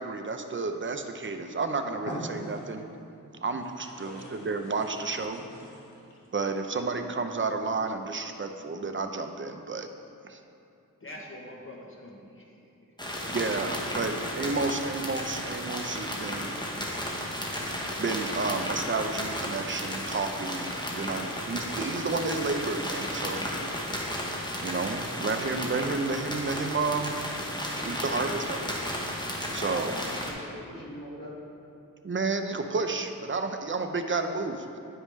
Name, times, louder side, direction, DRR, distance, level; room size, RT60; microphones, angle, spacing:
voice 1, 0.0-2.8 3.4-5.4 6.3-9.9 10.3-10.4 13.3-16.5 18.0-23.5 24.6-27.1 27.8-28.7 29.5-30.0 32.0-34.8, right 3 dB, 35° right, 6 dB, 0.5 m, -31 dB
sound 1, 1.4-1.5 2.0-3.0 3.6-6.3, equal, 60° left, 1.5 m, -43 dB
voice 2, 11.0-12.7, left 1 dB, 40° left, -2 dB, 0.9 m, -45 dB
sound 2, 13.0-30.3, equal, 15° left, 1.0 m, -34 dB
voice 3, 29.5-31.4, left 1 dB, 75° left, -4 dB, 1.5 m, -43 dB
9.8 x 4.9 x 3.2 m, 2.7 s
wide cardioid pair, 55°, 34 cm